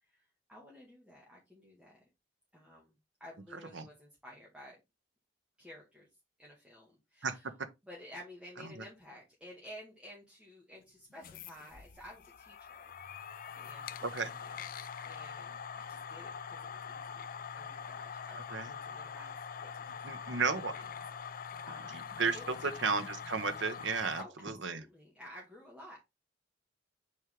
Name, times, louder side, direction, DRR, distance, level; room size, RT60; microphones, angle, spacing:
voice 1, 0.0-2.0 2.5-4.8 5.6-6.1 6.4-7.5 7.8-13.0 13.5-14.5 15.0-17.3 17.6-20.9 21.2-22.7 24.2-26.0, left 1 dB, 5° right, 2.2 m, -53 dB
sound 1, 11.1-24.2, left 7 dB, 50° left, 0.5 m, -44 dB
voice 2, 20.0-20.7 22.2-24.8, right 4 dB, 70° right, 1.1 m, -33 dB
6.4 x 4.6 x 3.6 m
head